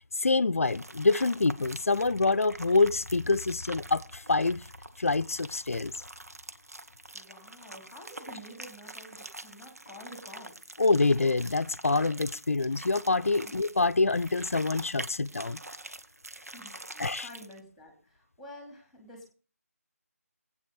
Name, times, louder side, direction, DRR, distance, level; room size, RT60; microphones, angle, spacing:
voice 1, 0.2-4.6 5.0-5.9 10.8-15.6 17.0-17.3, left 3 dB, 65° left, 0.6 m, -26 dB
sound 1, 0.6-17.6, right 2 dB, 75° right, 1.1 m, -46 dB
voice 2, 7.1-10.8 13.4-13.6 16.5-19.3, equal, ahead, 2.9 m, -49 dB
20.0 x 8.7 x 4.1 m
figure-of-eight pair, 155°, 8 cm